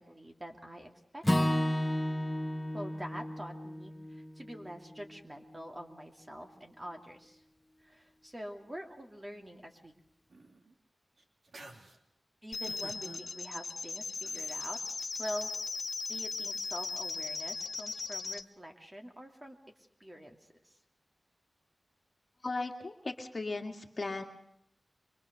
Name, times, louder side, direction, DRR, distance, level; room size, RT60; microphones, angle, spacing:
voice 1, 0.0-1.5 2.7-7.4 7.8-10.0 12.4-14.8 15.2-15.5 16.1-19.6 20.0-20.4 20.6-20.7, equal, 20° right, 3 dB, 2.6 m, -45 dB
Acoustic guitar / Strum, 1.2-5.5, left 1 dB, 15° left, 1.3 m, -33 dB
sound 1, 10.3-10.7 11.2-12.0 12.7-13.2 14.2-14.8, right 2 dB, 60° right, 2.9 m, -52 dB
sound 2, 12.5-18.4, left 4 dB, 65° left, 0.9 m, -38 dB
voice 2, 22.4-24.2, left 3 dB, 40° left, 3 dB, 2.1 m, -37 dB
24.5 x 24.0 x 6.7 m, 0.74 s
wide cardioid pair, 110°, 0 cm